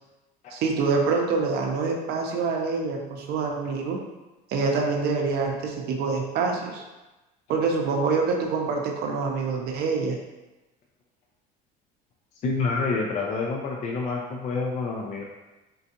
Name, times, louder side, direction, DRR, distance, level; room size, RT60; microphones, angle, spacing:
voice 1, 0.5-4.0 4.5-6.8 7.5-10.2, right 4 dB, 60° right, 1 dB, 0.6 m, -26 dB
voice 2, 12.4-15.2, left 4 dB, 40° left, -1 dB, 0.4 m, -28 dB
3.8 x 2.3 x 2.8 m, 1.1 s
cardioid pair, 125°, 18 cm